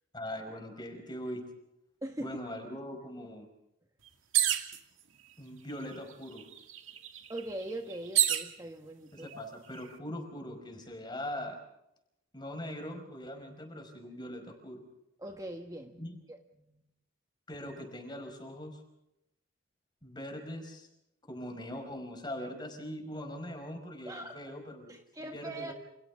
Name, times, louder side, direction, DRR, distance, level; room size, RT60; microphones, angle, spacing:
voice 1, 0.1-1.4 2.2-3.5 5.4-6.4 9.1-11.6 12.3-14.8 16.0-16.2 17.5-18.8 20.0-20.9 21.3-25.7, left 1 dB, 20° left, 4 dB, 5.2 m, -41 dB
voice 2, 2.0-2.4 7.3-9.3 15.2-16.0 16.3-16.8 24.0-24.4 24.9-25.7, right 1 dB, 20° right, 3 dB, 1.5 m, -41 dB
sound 1, 4.3-4.8 5.7-5.8 6.1-8.5 9.3-9.8, right 12 dB, 80° right, 2.2 m, -29 dB
29.5 x 28.5 x 3.6 m, 0.84 s
head